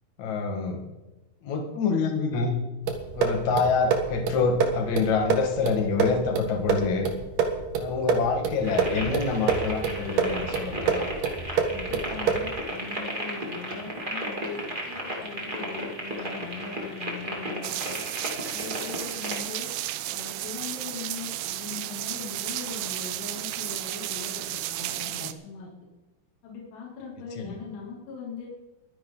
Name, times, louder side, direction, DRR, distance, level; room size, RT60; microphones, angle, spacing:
voice 1, 0.2-0.8 1.4-2.5 3.1-7.1 7.8-11.1 27.4-27.6, left 5 dB, 50° left, 3 dB, 2.5 m, -26 dB
sound 1, 2.9-12.6, right 6 dB, 70° right, 1.6 m, -28 dB
sound 2, 8.6-19.4, equal, 25° right, 0.9 m, -34 dB
voice 2, 11.7-18.0 18.5-19.7 20.1-25.7 26.4-28.5, left 4 dB, 75° left, -3 dB, 5.3 m, -40 dB
sound 3, 17.6-25.3, right 14 dB, 90° right, 2.4 m, -33 dB
22.5 x 10.5 x 4.0 m, 1.1 s
omnidirectional pair, 5.6 m